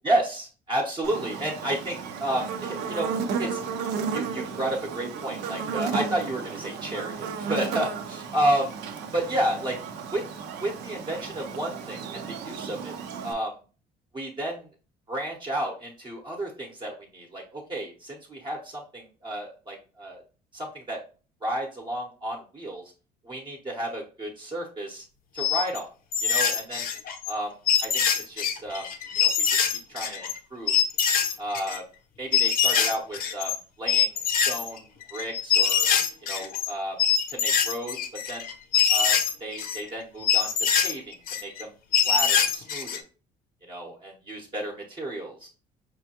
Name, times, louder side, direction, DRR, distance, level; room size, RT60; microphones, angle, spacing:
voice 1, 0.0-3.1 3.4-3.6 4.1-8.7 9.1-9.8 10.1-10.2 10.6-12.9 13.2-13.6 14.1-14.7 15.1-20.2 20.5-21.0 21.4-22.9 23.2-25.0 25.3-25.9 26.2-26.9 27.3-28.9 29.1-29.6 29.9-30.8 31.4-31.8 32.2-35.9 36.2-37.0 37.3-38.0 38.3-38.5 38.9-40.5 40.8-41.1 41.4-41.7 42.0-43.0 43.7-45.5, right 1 dB, 25° right, -2 dB, 0.9 m, -32 dB
Buzz, 1.0-13.3, right 6 dB, 80° right, 0.6 m, -34 dB
sound 1, 25.4-25.8 26.1-27.3 27.7-30.4 30.7-31.8 32.3-33.6 33.9-36.7 37.0-39.8 40.2-41.6 41.9-43.0, left 7 dB, 60° left, 0.6 m, -24 dB
5.4 x 2.2 x 2.9 m, 0.36 s
cardioid pair, 110°, 17 cm